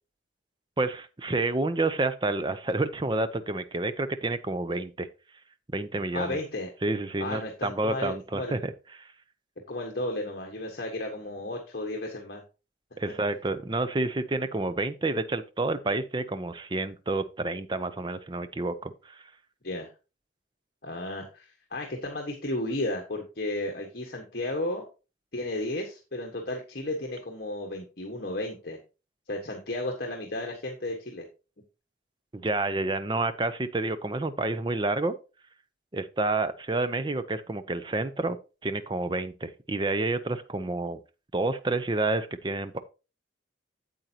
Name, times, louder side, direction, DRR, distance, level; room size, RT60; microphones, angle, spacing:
voice 1, 0.8-5.1 5.7-6.4 6.8-8.7 9.0-9.1 13.0-19.2 32.3-35.1 35.9-38.4 38.6-41.0 41.3-42.8, right 2 dB, 25° right, 0.5 m, -29 dB
voice 2, 6.1-6.7 7.2-8.6 9.7-12.4 13.0-13.1 19.6-19.9 20.8-24.8 25.3-28.8 29.3-31.2, left 1 dB, 55° left, 1.3 m, -33 dB
8.9 x 7.9 x 2.8 m
head